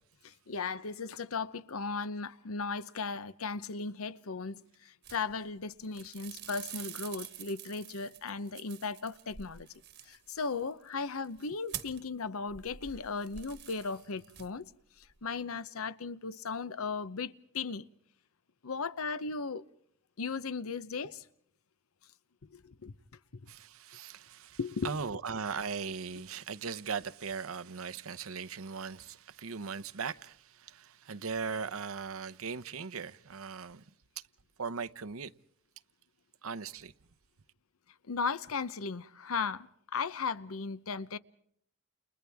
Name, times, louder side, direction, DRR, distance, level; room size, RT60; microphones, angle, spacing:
voice 1, 0.2-9.7 10.1-14.6 15.2-17.9 18.6-19.6 20.2-21.2 22.5-22.9 24.6-24.9 38.1-41.2, left 4 dB, 80° left, 0.8 m, -36 dB
sound 1, 5.0-5.6 5.8-12.1 12.5-14.7 15.0-15.3, right 10 dB, 50° right, 1.3 m, -47 dB
voice 2, 23.5-33.8 34.6-35.3 36.4-36.9, right 5 dB, 75° right, 0.8 m, -39 dB
30.0 x 30.0 x 3.5 m
head